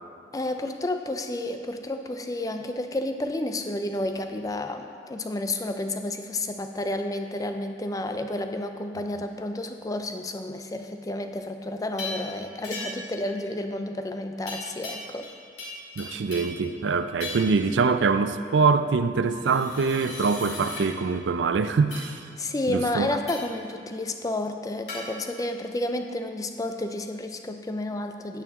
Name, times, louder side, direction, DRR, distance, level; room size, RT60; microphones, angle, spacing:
voice 1, 0.3-15.3 22.4-28.4, left 1 dB, 20° left, 6 dB, 0.4 m, -31 dB
sound 1, 12.0-12.3 12.6-13.1 14.5-15.3 15.6-16.6 17.2-17.6 19.3-20.9 21.9-22.1 23.3-23.6 24.9-25.0, left 2 dB, 70° left, 2.3 m, -37 dB
voice 2, 16.0-22.2 22.7-23.1, right 4 dB, 85° right, 10 dB, 0.4 m, -24 dB
8.9 x 8.8 x 3.6 m, 2.2 s
head